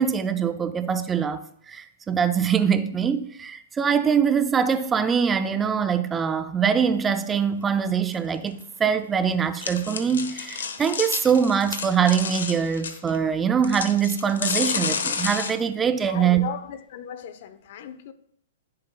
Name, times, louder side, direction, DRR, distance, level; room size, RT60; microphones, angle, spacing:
voice 1, 0.0-16.5, right 7 dB, 15° right, 0.5 m, -23 dB
sound 1, 8.1-8.2 8.5-8.6 9.5-13.2 13.6-15.5, left 6 dB, 80° left, 1.2 m, -30 dB
voice 2, 16.1-18.1, left 8 dB, 60° left, 0.8 m, -37 dB
14.5 x 7.6 x 2.3 m
hypercardioid pair, 130°, 0 cm